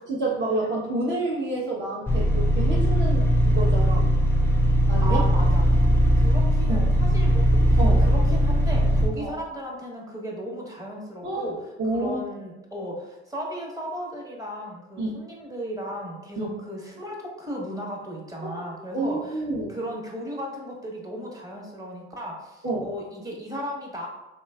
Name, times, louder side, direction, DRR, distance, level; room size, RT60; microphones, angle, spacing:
voice 1, 0.1-4.1 4.9-5.3 6.7-6.9 7.8-8.1 9.2-9.3 11.2-11.5 11.8-12.2 15.0-15.1 16.4-16.5 18.5-18.6 18.9-19.8 22.6-22.9, right 2 dB, 35° right, -6 dB, 0.9 m, -28 dB
sound 1, 2.1-9.1, equal, 5° left, 0.6 m, -20 dB
voice 2, 5.0-5.6 6.2-11.6 11.9-19.4 19.7-24.1, equal, 10° right, -2 dB, 1.1 m, -35 dB
3.6 x 2.9 x 2.3 m, 1.0 s
hypercardioid pair, 60°, 34 cm